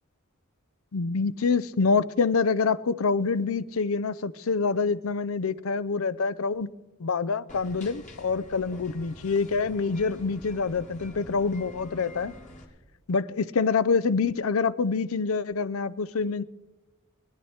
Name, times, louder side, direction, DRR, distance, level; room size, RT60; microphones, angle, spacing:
voice 1, 0.9-6.7 7.0-12.3 13.1-16.4, left 4 dB, 75° left, 0.5 m, -26 dB
sound 1, 7.5-12.7, left 1 dB, 35° left, 2.1 m, -47 dB
21.5 x 10.5 x 4.3 m
head